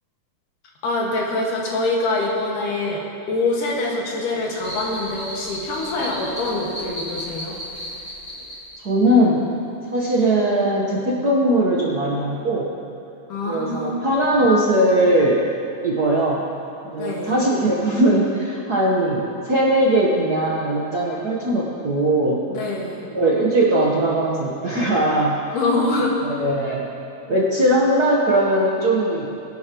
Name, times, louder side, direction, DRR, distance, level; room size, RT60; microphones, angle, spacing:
voice 1, 0.8-7.6 13.3-14.0 17.0-17.3 22.5-23.0 25.5-26.1, left 2 dB, 85° left, -3 dB, 3.3 m, -24 dB
sound 1, 4.6-8.8, equal, 20° left, 3.7 m, -34 dB
voice 2, 8.8-9.5 9.9-12.7 13.5-15.4 15.8-16.4 16.8-22.4 23.1-25.4 26.2-26.9 27.3-29.5, right 1 dB, 70° right, -5 dB, 0.9 m, -20 dB
22.0 x 11.5 x 3.0 m, 2.8 s
omnidirectional pair, 3.6 m